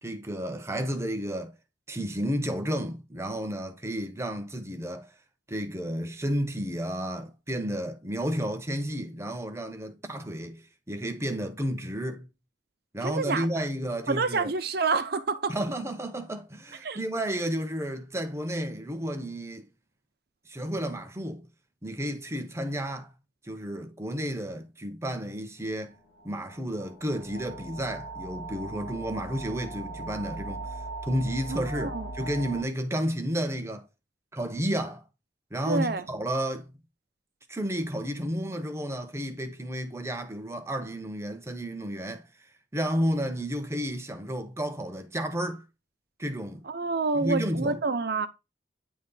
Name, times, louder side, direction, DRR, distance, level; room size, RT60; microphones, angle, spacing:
voice 1, 0.0-1.5 1.9-5.1 5.5-12.3 12.9-14.5 15.5-19.7 20.5-21.5 21.8-23.1 23.4-25.9 26.2-30.7 31.0-33.8 34.3-35.0 35.5-36.7 37.5-42.2 42.7-45.6 46.2-46.6 47.1-47.8, equal, 15° right, 0.8 m, -32 dB
voice 2, 13.0-13.5 14.1-15.5 16.8-17.0 31.5-32.1 35.7-36.1 46.7-48.3, right 4 dB, 60° right, 0.8 m, -28 dB
sound 1, 25.9-32.6, right 2 dB, 85° left, 2.1 m, -39 dB
9.2 x 3.1 x 3.9 m
head